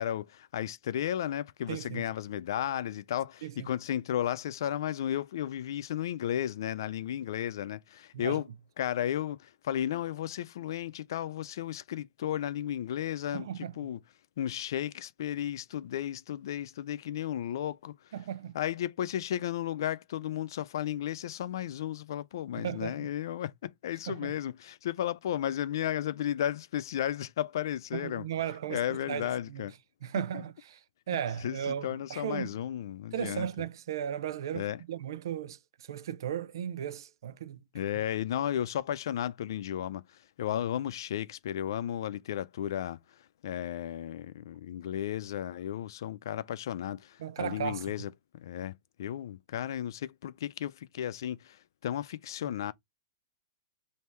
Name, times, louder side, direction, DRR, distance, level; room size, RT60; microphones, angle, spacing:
voice 1, 0.0-8.5 8.8-14.0 14.4-17.9 18.5-28.3 28.7-29.7 30.3-30.4 31.4-33.5 34.5-34.8 37.7-43.2 43.4-48.7 49.0-52.7, left 11 dB, 70° left, 0.5 m, -34 dB
voice 2, 1.7-2.0 3.4-3.7 8.1-8.4 13.3-13.8 18.1-18.6 22.5-23.0 24.1-24.3 27.9-29.6 30.0-30.8 31.1-32.5 33.1-35.6 35.9-37.6 47.2-47.8, right 9 dB, 75° right, 0.5 m, -36 dB
3.4 x 2.8 x 4.4 m
hypercardioid pair, 150°, 2 cm